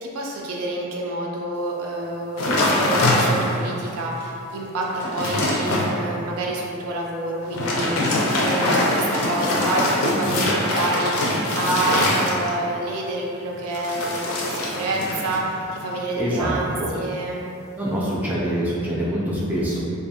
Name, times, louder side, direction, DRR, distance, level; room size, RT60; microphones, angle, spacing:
voice 1, 0.0-17.4, right 2 dB, 80° right, -2 dB, 0.4 m, -28 dB
sound 1, 2.4-3.7 4.2-4.3 4.7-5.9 7.4-12.7 13.7-15.4 15.7-16.1, left 1 dB, 75° left, 0.5 m, -23 dB
voice 2, 16.2-16.9 17.7-19.9, right 1 dB, 5° right, -8 dB, 0.3 m, -25 dB
2.5 x 2.3 x 2.6 m, 2.6 s
head